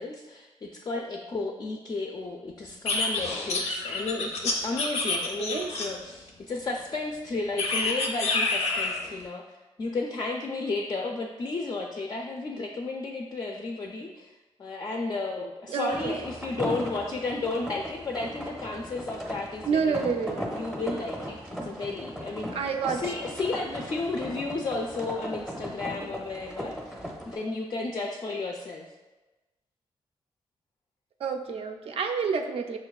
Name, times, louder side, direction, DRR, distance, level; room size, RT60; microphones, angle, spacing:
voice 1, 0.0-9.4 9.8-14.3 14.6-22.5 22.9-28.9, left 3 dB, 40° left, 1 dB, 0.3 m, -33 dB
sound 1, 2.9-6.1 7.6-9.1, left 3 dB, 90° left, 0.5 m, -28 dB
voice 2, 5.4-5.7 15.7-16.3 19.7-20.6 22.5-23.0 31.2-32.8, right 5 dB, 65° right, 4 dB, 0.4 m, -29 dB
sound 2, 15.9-27.4, equal, ahead, 0.6 m, -37 dB
5.9 x 2.2 x 2.3 m, 1.1 s
cardioid pair, 95°, 11 cm